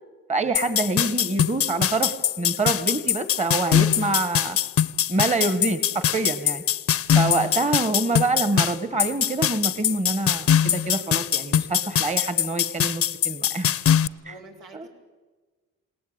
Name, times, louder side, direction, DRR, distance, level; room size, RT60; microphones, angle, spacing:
voice 1, 0.3-4.6 5.1-6.6 7.1-13.7 14.2-14.4 14.7-14.9, right 2 dB, 25° right, 12 dB, 1.4 m, -26 dB
sound 1, 0.5-14.1, left 10 dB, 50° left, 0.7 m, -22 dB
voice 2, 7.6-7.9 14.2-14.9, right 2 dB, 90° right, 0 dB, 4.9 m, -46 dB
28.0 x 19.0 x 8.8 m, 1.4 s
cardioid pair, 90°, 30 cm